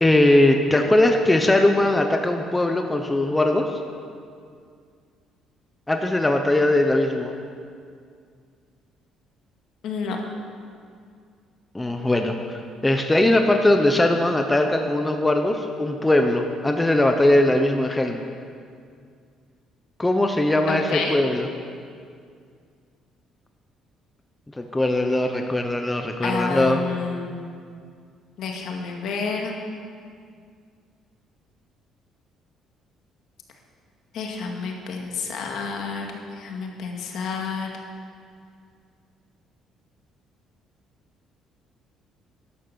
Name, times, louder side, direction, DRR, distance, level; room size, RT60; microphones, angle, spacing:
voice 1, 0.0-3.8 5.9-7.3 11.7-18.2 20.0-21.5 24.6-26.8, left 1 dB, 10° left, 4 dB, 0.8 m, -20 dB
voice 2, 9.8-10.2 20.7-21.2 26.2-27.4 28.4-29.5 34.1-37.7, left 5 dB, 65° left, 1 dB, 2.1 m, -29 dB
11.5 x 11.5 x 6.8 m, 2.2 s
cardioid pair, 140°, 0 cm